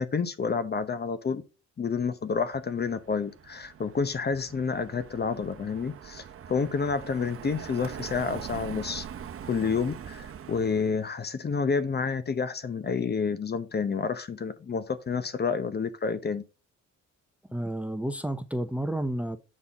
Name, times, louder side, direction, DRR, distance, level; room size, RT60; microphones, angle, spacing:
voice 1, 0.0-1.4 1.8-9.1 9.5-16.4, left 5 dB, 35° left, 0.8 m, -29 dB
Car passing by, 2.5-11.1, right 8 dB, 45° right, 0.8 m, -43 dB
voice 2, 17.5-19.4, right 1 dB, 5° right, 0.7 m, -31 dB
7.4 x 4.0 x 4.9 m
cardioid pair, 90°, 30 cm